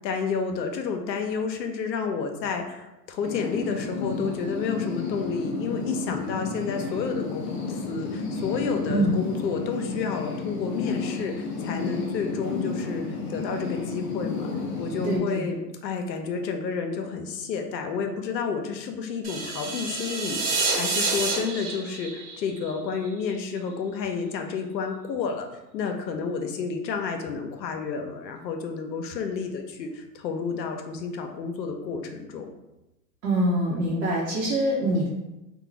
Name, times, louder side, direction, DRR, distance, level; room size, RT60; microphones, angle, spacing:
voice 1, 0.0-14.5 14.8-25.5 25.7-32.5, left 5 dB, 90° left, 4 dB, 0.6 m, -30 dB
sound 1, 3.2-15.2, left 4 dB, 30° left, 0.3 m, -32 dB
voice 2, 15.0-15.5 33.2-35.1, right 1 dB, 80° right, -5 dB, 0.9 m, -24 dB
sound 2, 19.2-23.3, right 3 dB, 25° right, 0.5 m, -28 dB
2.5 x 2.2 x 3.1 m, 0.96 s
hypercardioid pair, 105°, 49 cm